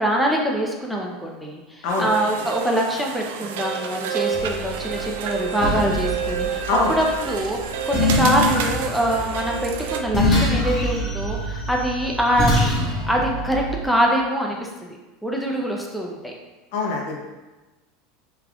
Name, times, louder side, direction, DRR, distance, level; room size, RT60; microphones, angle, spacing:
voice 1, 0.0-6.6 6.9-12.5 13.1-14.7 15.2-16.3, equal, ahead, -1 dB, 0.5 m, -24 dB
sound 1, 1.9-10.0, right 7 dB, 80° right, 0.3 m, -29 dB
sound 2, 4.3-13.8, left 1 dB, 45° left, 1.0 m, -25 dB
voice 2, 16.7-17.2, left 3 dB, 70° left, -1 dB, 0.8 m, -23 dB
3.5 x 2.4 x 3.4 m, 1.2 s
supercardioid pair, 115°, 0 cm